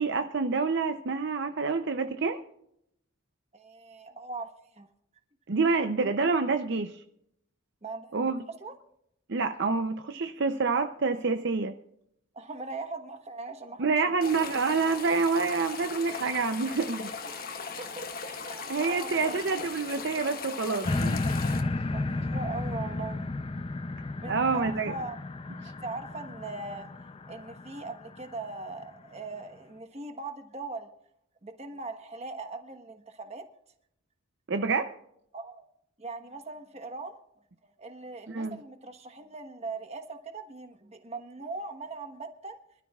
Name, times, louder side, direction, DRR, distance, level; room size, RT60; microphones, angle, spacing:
voice 1, 0.0-2.4 5.5-7.0 8.1-8.4 9.3-11.7 13.8-17.1 18.7-21.2 24.3-24.9 34.5-35.0 38.3-38.6, right 4 dB, 60° right, 7 dB, 0.6 m, -27 dB
voice 2, 3.5-4.9 7.8-8.3 8.6-8.8 12.3-14.1 17.1-19.4 21.9-23.3 24.2-25.2 25.6-26.9 27.3-30.9 31.4-33.4 35.3-35.7 36.0-37.2 37.6-42.6, right 3 dB, 30° right, 7 dB, 1.3 m, -40 dB
sound 1, 14.2-21.6, left 5 dB, 45° left, 1.2 m, -38 dB
sound 2, 20.8-28.2 28.8-28.9, left 2 dB, 25° left, 0.5 m, -33 dB
25.5 x 12.5 x 2.4 m, 0.76 s
head